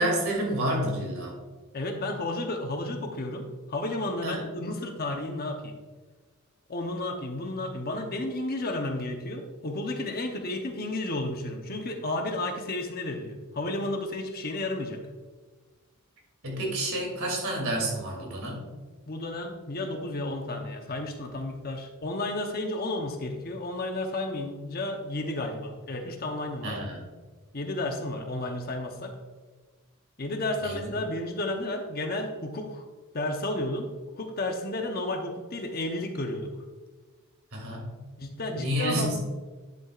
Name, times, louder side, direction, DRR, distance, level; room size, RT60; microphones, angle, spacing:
voice 1, 0.0-1.3 4.2-4.4 16.4-18.6 26.6-27.0 30.6-30.8 37.5-37.9 38.6-39.2, right 1 dB, 65° right, -1 dB, 2.8 m, -29 dB
voice 2, 1.7-5.8 6.7-15.0 19.1-26.8 27.5-29.1 30.2-32.8 33.1-33.9 34.2-36.5 38.2-39.2, left 2 dB, 45° left, 4 dB, 0.9 m, -32 dB
10.5 x 7.9 x 2.5 m, 1.3 s
head